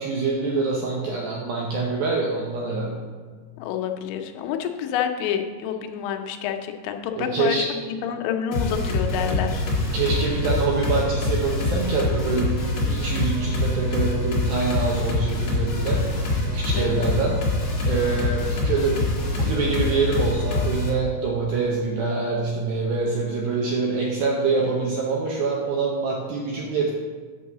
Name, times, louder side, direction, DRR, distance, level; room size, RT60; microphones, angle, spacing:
voice 1, 0.0-3.0 7.1-7.7 9.9-16.1 16.5-17.4 17.9-19.0 19.4-26.9, right 4 dB, 80° right, -2 dB, 2.1 m, -25 dB
voice 2, 3.6-9.7 16.7-17.0, left 8 dB, 90° left, 5 dB, 3.1 m, -28 dB
sound 1, 8.5-20.9, left 2 dB, 50° left, 1.5 m, -25 dB
8.3 x 4.7 x 6.6 m, 1.5 s
omnidirectional pair, 5.2 m